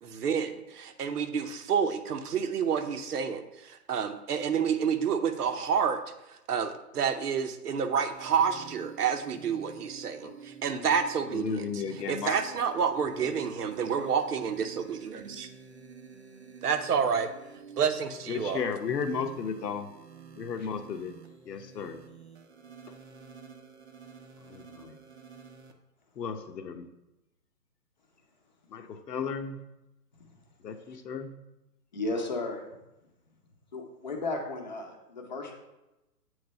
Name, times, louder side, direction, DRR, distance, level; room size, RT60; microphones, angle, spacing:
voice 1, 0.0-6.0 6.5-11.6 12.1-15.5 16.6-17.3 17.8-18.6, right 7 dB, 70° right, 9 dB, 0.9 m, -29 dB
sound 1, 8.1-25.7, right 6 dB, 45° right, 0.6 m, -50 dB
voice 2, 11.3-12.6 18.3-19.9 20.3-21.1 21.4-22.0 24.5-25.0 26.2-26.9 28.7-29.6 30.6-31.3, left 6 dB, 80° left, 7 dB, 0.9 m, -34 dB
voice 3, 31.9-32.6 33.7-35.5, left 2 dB, 30° left, 1 dB, 0.8 m, -34 dB
7.9 x 3.2 x 5.2 m, 0.95 s
hypercardioid pair, 165°, 48 cm